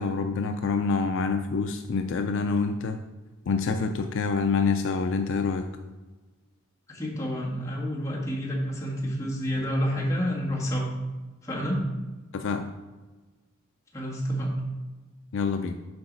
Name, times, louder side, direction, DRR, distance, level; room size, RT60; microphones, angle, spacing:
voice 1, 0.0-3.0 3.5-5.7 12.3-12.7 15.3-15.8, left 4 dB, 60° left, 6 dB, 0.4 m, -26 dB
voice 2, 6.9-10.9 11.4-11.8 13.9-14.5, equal, 15° left, -5 dB, 1.7 m, -29 dB
7.9 x 4.8 x 4.0 m, 1.2 s
head